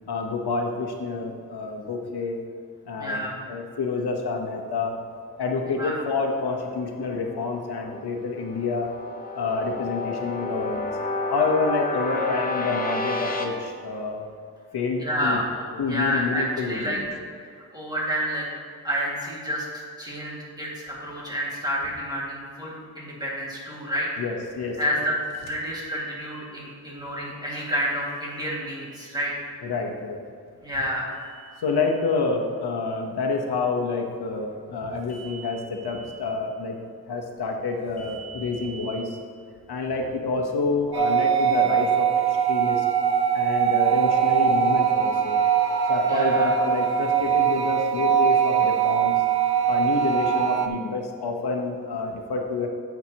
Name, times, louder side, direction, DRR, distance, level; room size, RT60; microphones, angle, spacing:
voice 1, 0.1-2.4 2.9-5.0 5.4-8.9 9.3-10.9 11.3-14.3 14.7-15.4 15.8-17.0 24.2-24.8 29.6-30.2 31.6-36.8 37.1-39.2 39.7-42.9 43.3-45.4 45.9-49.1 49.7-52.7, left 4 dB, 85° left, 2 dB, 1.1 m, -28 dB
voice 2, 3.0-3.4 5.8-6.0 12.1-12.3 15.0-17.0 17.5-18.4 18.8-19.7 20.0-24.1 24.8-29.5 30.6-31.1 46.1-46.5, equal, 10° right, -5 dB, 2.1 m, -29 dB
sound 1, 5.7-8.0 8.4-13.5, left 2 dB, 25° left, 0.8 m, -30 dB
sound 2, 25.3-26.4 28.0-29.1 31.1-32.2 35.0-36.2 38.0-39.0, right 6 dB, 40° left, 1.1 m, -47 dB
sound 3, 40.9-50.7, right 8 dB, 75° right, 0.7 m, -22 dB
10.5 x 8.1 x 3.0 m, 2.2 s
wide cardioid pair, 160°, 38 cm